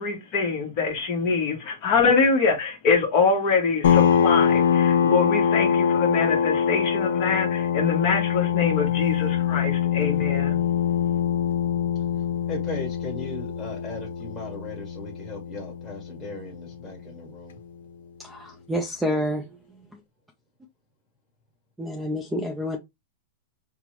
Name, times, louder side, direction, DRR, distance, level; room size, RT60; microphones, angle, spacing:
voice 1, 0.0-10.6, left 4 dB, 35° left, 1.0 m, -24 dB
sound 1, 3.8-17.1, left 8 dB, 85° left, 0.6 m, -24 dB
voice 2, 12.5-17.6, left 2 dB, 10° left, 1.5 m, -37 dB
voice 3, 18.2-19.5 21.8-22.8, equal, 5° right, 0.5 m, -28 dB
5.2 x 2.1 x 3.0 m
supercardioid pair, 170°, 0 cm